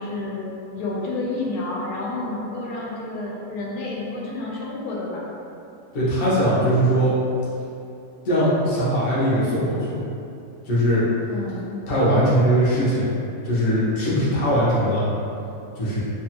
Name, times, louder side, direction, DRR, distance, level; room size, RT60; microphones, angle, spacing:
voice 1, 0.0-5.3 11.3-11.8, left 2 dB, 75° left, -4 dB, 1.1 m, -30 dB
voice 2, 5.9-7.2 8.2-10.0 10.6-11.1 11.9-13.1 13.4-15.1 15.7-16.0, equal, 50° left, -9 dB, 0.6 m, -20 dB
2.7 x 2.3 x 2.8 m, 2.7 s
omnidirectional pair, 1.7 m